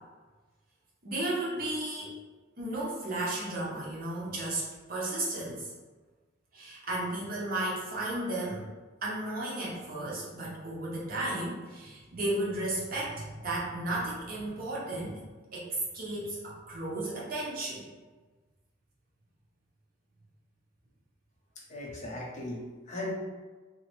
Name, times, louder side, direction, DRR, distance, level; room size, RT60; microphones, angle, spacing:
voice 1, 1.0-2.1 2.6-5.7 6.5-8.7 9.0-15.2 15.5-15.7 15.9-17.9, right 1 dB, 50° right, -5 dB, 0.7 m, -34 dB
voice 2, 21.7-23.1, left 2 dB, 40° left, -3 dB, 0.6 m, -38 dB
2.8 x 2.0 x 2.9 m, 1.3 s
head